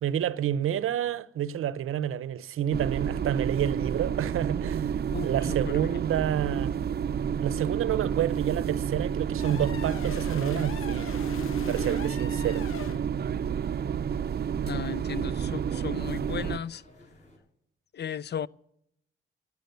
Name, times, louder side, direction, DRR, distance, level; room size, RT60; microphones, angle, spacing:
voice 1, 0.0-5.0 5.2-6.7 7.4-11.2 11.7-12.7, right 10 dB, 85° right, 0.7 m, -29 dB
sound 1, 2.7-16.6, right 8 dB, 50° right, 0.5 m, -30 dB
voice 2, 5.1-5.9 14.6-16.8 17.9-18.5, left 9 dB, 55° left, 0.5 m, -36 dB
sound 2, 6.1-17.4, left 1 dB, 35° left, 6.0 m, -57 dB
sound 3, 9.4-13.1, left 7 dB, 90° left, 1.0 m, -41 dB
13.5 x 9.6 x 8.1 m
cardioid pair, 85°, 21 cm